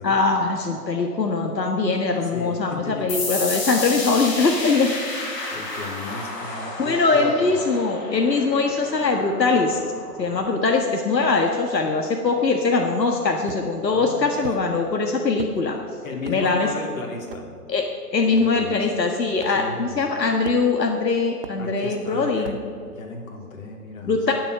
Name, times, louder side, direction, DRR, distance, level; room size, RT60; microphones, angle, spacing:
voice 1, 0.0-4.9 6.8-9.8 10.2-15.8 16.3-16.7 17.7-17.8 18.1-22.6 24.0-24.3, left 4 dB, 90° left, 2 dB, 1.6 m, -22 dB
voice 2, 2.2-3.1 5.5-7.6 13.9-14.6 16.0-17.5 18.2-18.9 19.5-20.1 21.6-24.3, left 3 dB, 55° left, 0 dB, 3.3 m, -35 dB
sound 1, 3.1-10.5, left 3 dB, 30° left, 4.5 m, -32 dB
sound 2, 13.4-13.9 14.4-14.6 15.4-15.6 16.2-16.4 17.3-17.5 18.3-18.4 19.4-19.6 20.4-20.9 21.4-21.6 22.4-22.7, right 6 dB, 35° right, 0.7 m, -37 dB
18.5 x 7.7 x 6.6 m, 2.2 s
hypercardioid pair, 145°, 49 cm